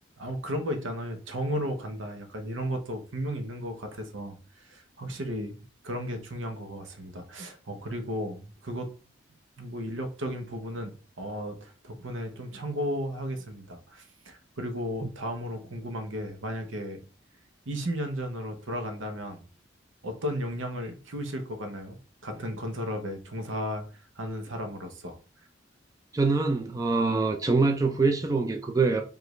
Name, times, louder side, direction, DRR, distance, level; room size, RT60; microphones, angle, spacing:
voice 1, 0.2-4.4 4.6-8.9 9.6-17.0 17.7-19.4 20.0-23.8 24.2-25.2, equal, 85° right, 0.8 m, -34 dB
voice 2, 26.1-29.0, right 3 dB, 20° right, 0.4 m, -24 dB
4.9 x 2.5 x 3.1 m
head